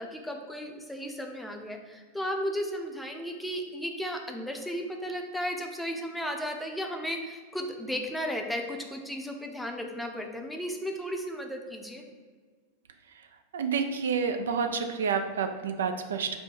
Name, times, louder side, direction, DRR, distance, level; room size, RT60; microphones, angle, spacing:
voice 1, 0.0-12.0, equal, 5° left, 2 dB, 0.6 m, -34 dB
voice 2, 13.5-16.4, right 6 dB, 80° right, 7 dB, 0.3 m, -29 dB
4.3 x 2.2 x 4.6 m, 1.4 s
hypercardioid pair, 105°, 0 cm